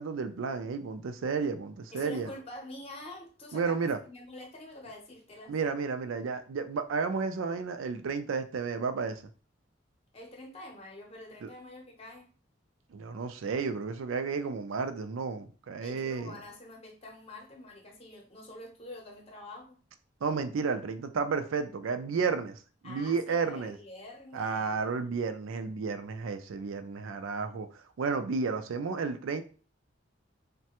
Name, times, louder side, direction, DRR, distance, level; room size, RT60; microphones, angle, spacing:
voice 1, 0.0-2.3 3.5-4.0 5.5-9.2 11.4-11.5 12.9-16.4 20.2-23.8 24.3-27.7 28.0-29.4, right 5 dB, 90° right, 0.4 m, -32 dB
voice 2, 1.9-5.5 10.1-12.3 15.8-19.8 22.8-24.8, left 1 dB, 30° left, 0.7 m, -46 dB
3.2 x 2.2 x 2.9 m
head